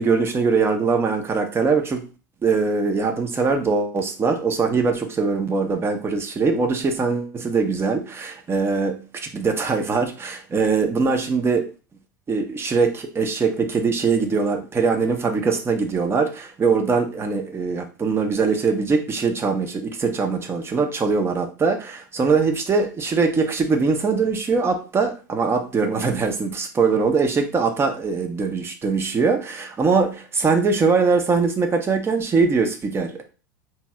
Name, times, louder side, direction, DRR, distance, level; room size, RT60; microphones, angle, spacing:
voice 1, 0.0-2.0 2.4-11.7 12.3-33.2, right 4 dB, 25° right, 5 dB, 0.7 m, -22 dB
2.9 x 2.8 x 2.3 m, 0.34 s
hypercardioid pair, 85°, 10 cm